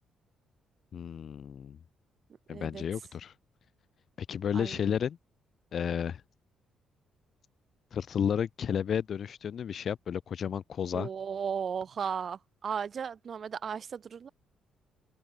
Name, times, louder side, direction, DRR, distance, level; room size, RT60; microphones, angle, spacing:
voice 1, 0.9-1.8 2.5-3.3 4.2-5.2 5.7-6.2 7.9-11.1, left 8 dB, 55° left, 0.9 m, -32 dB
voice 2, 2.5-2.8 4.5-5.0 10.9-14.3, right 7 dB, 50° right, 2.8 m, -36 dB
open air
cardioid pair, 90°, 0 cm